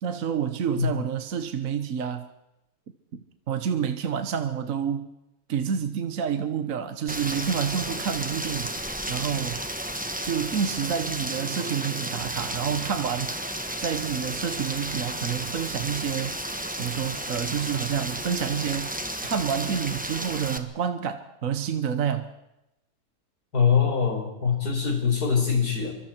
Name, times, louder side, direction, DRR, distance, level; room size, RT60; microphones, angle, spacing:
voice 1, 0.0-2.3 3.1-5.1 5.5-8.7 9.1-9.6 10.2-13.3 13.8-16.4 16.7-18.9 19.2-22.3, right 8 dB, 60° right, 8 dB, 1.4 m, -28 dB
Rain, 7.1-20.6, right 1 dB, 5° right, 1.2 m, -33 dB
voice 2, 23.5-25.9, left 6 dB, 85° left, 2 dB, 5.2 m, -23 dB
27.5 x 24.0 x 4.5 m, 0.90 s
omnidirectional pair, 1.6 m